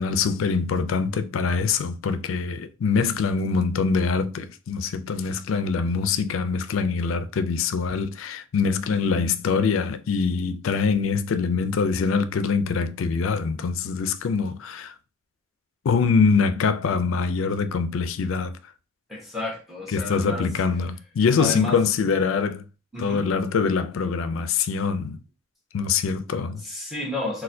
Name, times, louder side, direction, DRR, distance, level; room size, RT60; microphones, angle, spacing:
voice 1, 0.0-14.9 15.8-18.6 19.9-22.7 23.0-25.2 25.7-26.6, left 5 dB, 85° left, 0.4 m, -24 dB
voice 2, 8.9-9.2 19.1-20.5 21.4-21.9 22.9-23.2 26.6-27.4, left 2 dB, ahead, 1.0 m, -32 dB
4.1 x 2.2 x 2.6 m
head